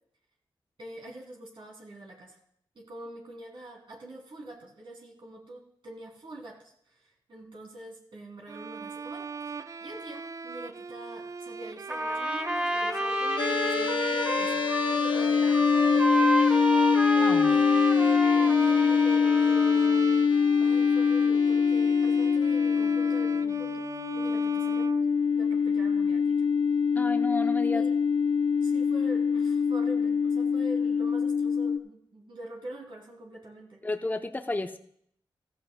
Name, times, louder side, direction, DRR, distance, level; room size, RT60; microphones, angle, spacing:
voice 1, 0.8-2.4 2.7-14.6 14.9-17.2 17.5-20.2 20.6-23.8 24.1-24.9 25.3-26.5 27.7-27.9 28.6-33.8, right 1 dB, 65° right, -1 dB, 2.8 m, -45 dB
Bowed string instrument, 8.5-25.7, right 4 dB, 35° right, 0.4 m, -39 dB
Trumpet, 11.9-20.0, right 1 dB, 10° right, 1.0 m, -30 dB
sound 1, 13.4-31.8, left 6 dB, 65° left, 0.5 m, -24 dB
voice 2, 17.2-17.6 27.0-27.8 33.8-34.8, left 2 dB, 20° left, 7 dB, 0.6 m, -32 dB
14.0 x 14.0 x 2.2 m, 0.65 s
cardioid pair, 55°, 9 cm